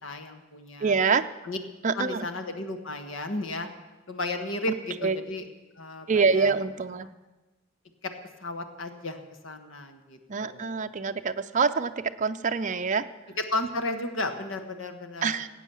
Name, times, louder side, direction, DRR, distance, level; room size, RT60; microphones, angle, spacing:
voice 1, 0.0-0.9 1.4-1.6 1.9-3.7 4.1-5.5 5.8-6.5 8.0-8.1 8.4-9.2 9.4-10.8 13.4-15.4, left 2 dB, 70° left, 7 dB, 1.4 m, -34 dB
voice 2, 0.8-1.3 1.8-2.3 5.0-5.2 6.1-7.1 10.3-11.9 12.2-13.1 15.2-15.5, right 5 dB, 40° right, 8 dB, 0.5 m, -25 dB
17.5 x 8.4 x 7.1 m, 1.1 s
head